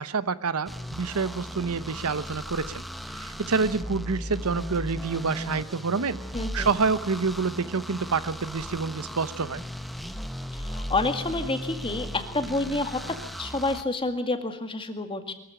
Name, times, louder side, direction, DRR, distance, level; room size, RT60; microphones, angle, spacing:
voice 1, 0.0-2.8 3.2-6.2 6.5-9.6, right 4 dB, 70° right, 15 dB, 0.9 m, -27 dB
sound 1, 0.7-13.8, equal, ahead, 1.0 m, -37 dB
voice 2, 6.3-6.7 10.6-13.0 13.4-15.3, left 2 dB, 25° left, 7 dB, 2.0 m, -28 dB
23.0 x 15.0 x 10.0 m, 0.80 s
head